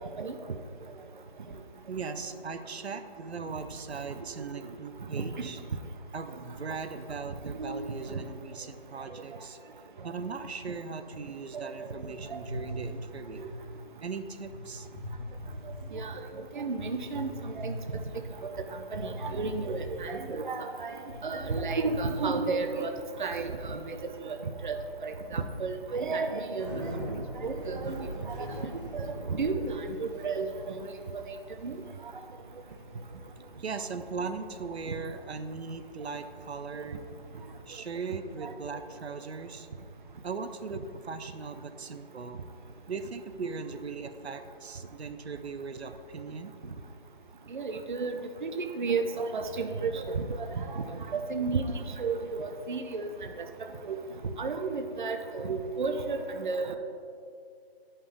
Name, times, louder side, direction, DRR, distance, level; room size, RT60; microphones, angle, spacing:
voice 1, 1.9-5.6 6.1-9.6 10.0-13.5 14.0-14.9 33.6-37.1 37.7-39.7 40.2-42.5 42.9-46.5, right 4 dB, 90° right, 9 dB, 0.7 m, -39 dB
sound 1, 12.4-13.7 14.4-14.6 14.9-16.1 16.8-18.4 18.9-20.4 20.7-20.8 21.1-22.3, equal, 15° left, 0.7 m, -40 dB
voice 2, 16.5-17.8 18.4-18.5 18.9-20.9 21.2-22.9 23.2-24.0 24.2-24.4 24.6-24.8 25.0-28.7 28.9-29.1 29.4-30.9 31.3-31.4 31.6-31.8 36.7-36.8 38.4-38.5 47.5-50.8 51.1-53.1 53.4-53.5 53.8-54.0 54.4-56.8, right 4 dB, 50° right, 6 dB, 0.5 m, -32 dB
Bicycle, 22.9-37.7, equal, 15° right, 1.6 m, -45 dB
10.0 x 5.6 x 3.4 m, 2.4 s
figure-of-eight pair, 165°, 31 cm